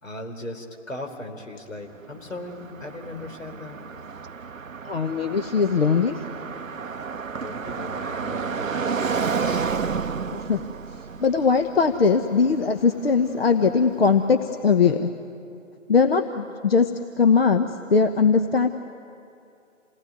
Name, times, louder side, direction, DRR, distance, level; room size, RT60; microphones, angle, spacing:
voice 1, 0.0-3.8 7.4-10.2, left 1 dB, 75° left, 4 dB, 3.9 m, -38 dB
Car passing by, 1.9-13.9, right 5 dB, 80° right, 0.7 m, -31 dB
voice 2, 4.8-6.2 10.3-10.6 11.2-15.1 15.9-16.9 17.2-18.7, left 5 dB, 50° left, 7 dB, 1.0 m, -20 dB
28.0 x 18.5 x 9.4 m, 2.5 s
figure-of-eight pair, 140°, 39 cm